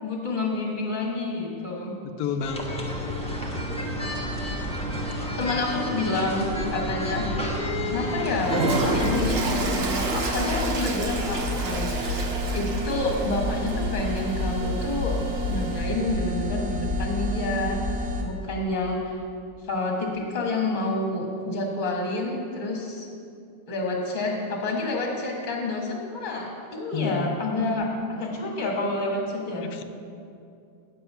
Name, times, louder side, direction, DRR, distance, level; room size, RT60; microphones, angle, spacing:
voice 1, 0.0-1.9 5.2-7.3 7.6-12.2 12.5-15.2 15.5-17.8 18.2-19.2 19.7-23.1 23.7-29.7, left 2 dB, 30° left, -1 dB, 1.4 m, -28 dB
voice 2, 2.0-3.6 26.9-27.3 29.7-29.8, left 6 dB, 75° left, 7 dB, 1.0 m, -32 dB
sound 1, 2.4-9.2, equal, 5° left, 0.9 m, -30 dB
Toilet flush, 8.4-15.9, right 2 dB, 50° right, 0.8 m, -30 dB
sound 2, 8.8-18.2, left 1 dB, 70° right, 1.5 m, -29 dB
8.5 x 7.8 x 5.5 m, 2.5 s
omnidirectional pair, 1.7 m